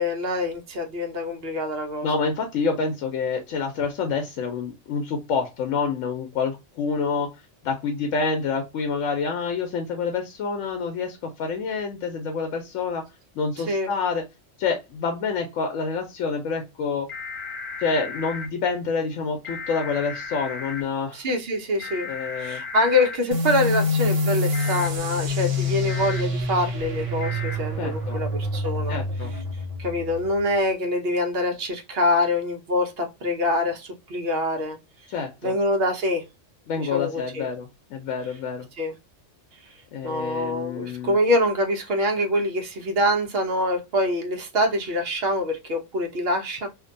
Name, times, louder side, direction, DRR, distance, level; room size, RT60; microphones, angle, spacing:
voice 1, 0.0-2.1 13.7-13.9 21.1-22.1 22.4-29.0 29.8-34.8 35.4-36.2 36.8-37.5 38.8-39.0 40.0-46.7, left 1 dB, 60° right, 0.8 m, -25 dB
voice 2, 2.0-7.3 7.6-13.0 13.4-14.2 14.6-17.1 17.8-21.2 22.0-22.6 27.8-28.2 28.9-29.3 35.1-35.5 36.7-38.7 39.9-41.2, left 5 dB, 90° left, 1.0 m, -27 dB
sound 1, 17.1-18.5 19.4-20.8 21.8-23.2 24.5-24.9 25.9-26.2 27.2-27.6, left 4 dB, 35° left, 0.6 m, -35 dB
sound 2, 23.3-30.6, left 2 dB, 75° right, 1.2 m, -27 dB
2.6 x 2.2 x 2.5 m
omnidirectional pair, 1.3 m